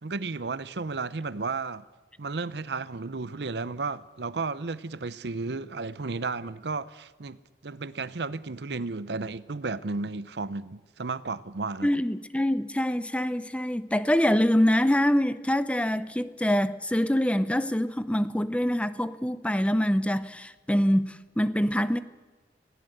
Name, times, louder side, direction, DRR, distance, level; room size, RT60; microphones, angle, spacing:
voice 1, 0.0-1.8 2.2-11.9, right 3 dB, 70° right, 0.7 m, -33 dB
voice 2, 11.8-22.0, equal, 5° left, 0.7 m, -25 dB
20.0 x 17.5 x 8.0 m
head